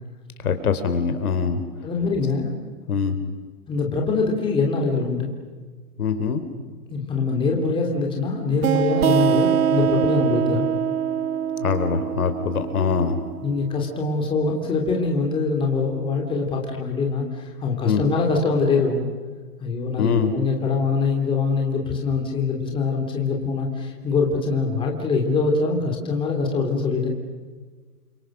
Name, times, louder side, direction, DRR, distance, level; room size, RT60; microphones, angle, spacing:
voice 1, 0.4-1.6 2.9-3.2 6.0-6.4 11.6-13.3 17.8-18.0 20.0-20.3, left 6 dB, 65° left, 9 dB, 4.0 m, -23 dB
voice 2, 1.8-2.5 3.7-5.3 6.9-10.7 13.4-19.1 19.6-27.1, left 4 dB, 10° left, 1 dB, 3.3 m, -23 dB
sound 1, 8.6-14.0, right 9 dB, 60° right, 1.2 m, -24 dB
30.0 x 26.0 x 6.4 m, 1.5 s
hypercardioid pair, 150°, 48 cm